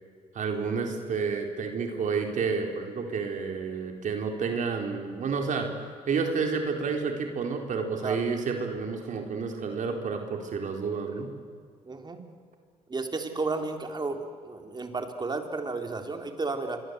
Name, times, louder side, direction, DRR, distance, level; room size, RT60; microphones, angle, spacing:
voice 1, 0.3-5.7 6.1-11.3, right 5 dB, 60° right, 3 dB, 3.9 m, -30 dB
voice 2, 11.8-12.2 12.9-16.8, right 3 dB, 30° right, 5 dB, 3.8 m, -33 dB
26.5 x 23.0 x 8.1 m, 2.1 s
cardioid pair, 80°, 14 cm